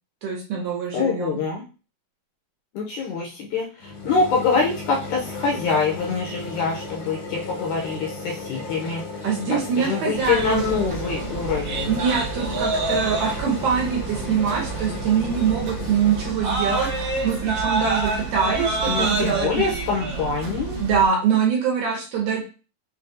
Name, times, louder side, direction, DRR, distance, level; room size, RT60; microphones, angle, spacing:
voice 1, 0.2-1.4 9.2-10.7 11.9-19.5 20.8-22.4, right 7 dB, 70° right, -2 dB, 2.0 m, -24 dB
voice 2, 0.9-1.6 2.7-9.0 9.5-12.0 18.9-20.8, left 4 dB, 75° left, -2 dB, 1.9 m, -25 dB
sound 1, 3.8-16.3, left 2 dB, 60° left, 1.2 m, -35 dB
sound 2, 10.1-21.1, right 3 dB, 55° right, 2.0 m, -28 dB
5.9 x 2.3 x 2.6 m, 0.34 s
omnidirectional pair, 4.1 m